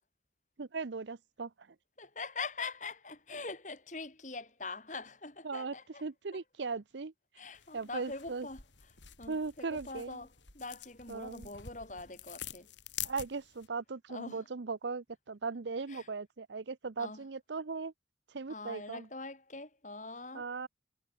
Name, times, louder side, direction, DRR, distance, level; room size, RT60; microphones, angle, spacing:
voice 1, 0.6-1.8 5.4-7.1 7.7-8.5 9.3-10.3 11.1-11.5 13.0-17.9 18.3-19.1 20.3-20.7, right 4 dB, 75° right, 0.7 m, -38 dB
voice 2, 2.0-6.0 7.4-8.6 9.2-10.3 10.6-12.7 14.1-14.4 15.9-16.0 17.0-17.2 18.5-20.4, left 3 dB, 40° left, 3.7 m, -43 dB
sound 1, 7.5-13.7, left 11 dB, 80° left, 3.9 m, -47 dB
head